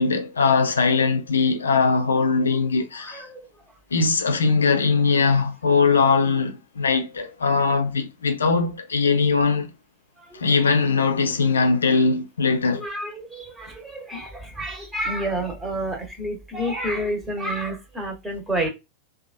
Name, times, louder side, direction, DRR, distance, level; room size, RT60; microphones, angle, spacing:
voice 1, 0.0-3.3 3.9-9.7 10.3-12.8, left 4 dB, 70° left, 0.5 m, -21 dB
voice 2, 3.0-3.5 10.2-10.5 12.7-18.7, right 1 dB, 10° right, 1.1 m, -29 dB
2.8 x 2.4 x 2.5 m
figure-of-eight pair, 90°, 0 cm